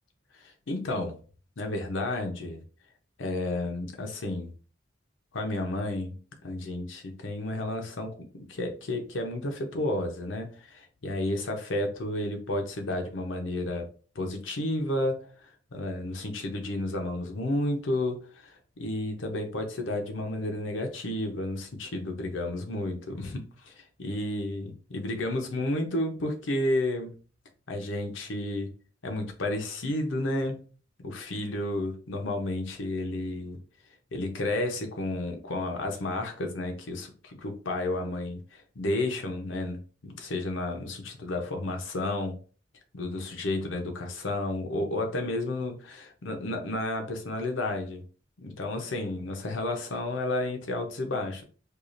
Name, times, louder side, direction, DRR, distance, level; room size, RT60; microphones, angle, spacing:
voice 1, 0.4-1.2 1.6-2.6 3.2-4.5 5.3-6.2 6.4-13.9 14.1-27.2 27.7-28.7 29.0-30.6 31.0-33.6 34.1-42.4 42.9-48.0 48.4-51.4, left 1 dB, 90° left, 0.8 m, -32 dB
4.7 x 2.4 x 2.5 m
head